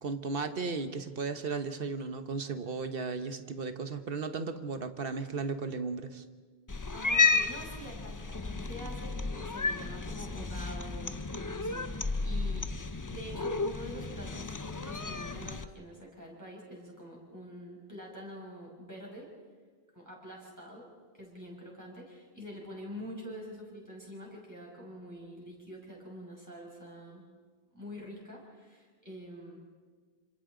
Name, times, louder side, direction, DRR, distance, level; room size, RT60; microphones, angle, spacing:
voice 1, 0.0-6.2, right 4 dB, 65° right, 8 dB, 1.3 m, -35 dB
Cat, 6.7-15.7, left 4 dB, 25° left, 0.5 m, -32 dB
voice 2, 6.9-12.7 13.1-19.3 19.9-27.2 27.7-29.6, equal, 15° right, -3 dB, 5.8 m, -46 dB
27.5 x 26.5 x 3.9 m, 1.5 s
omnidirectional pair, 1.0 m